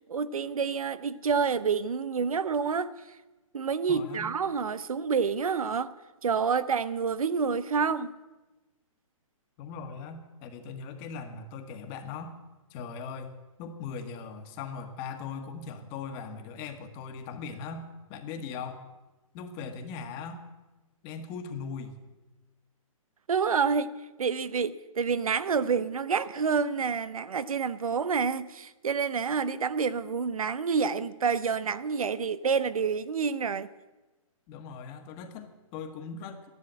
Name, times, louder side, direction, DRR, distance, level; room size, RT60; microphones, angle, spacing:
voice 1, 0.1-2.9 3.5-5.9 6.2-8.1 23.3-23.9 24.2-33.7, right 5 dB, 85° right, 0.9 m, -28 dB
voice 2, 3.9-4.3 9.6-12.4 12.7-13.3 13.6-18.8 19.3-20.4 21.0-22.0 34.5-36.5, left 5 dB, 30° left, 1.6 m, -39 dB
12.5 x 11.0 x 7.7 m
hypercardioid pair, 145°, 18 cm